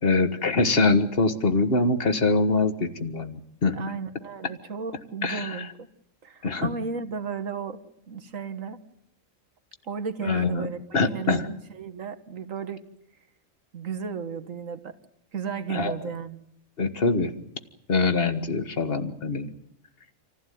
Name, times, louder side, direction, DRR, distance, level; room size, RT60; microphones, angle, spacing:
voice 1, 0.0-3.8 5.2-5.7 6.4-6.7 10.2-10.7 10.9-11.5 15.7-15.9 16.8-17.3 17.9-19.6, left 3 dB, 50° left, 10 dB, 1.7 m, -24 dB
voice 2, 3.7-5.9 6.2-7.8 8.1-8.8 9.9-10.8 11.1-12.8 13.7-15.0 15.3-16.4, right 6 dB, 85° right, 8 dB, 2.0 m, -34 dB
27.0 x 15.5 x 9.3 m, 0.80 s
omnidirectional pair, 1.3 m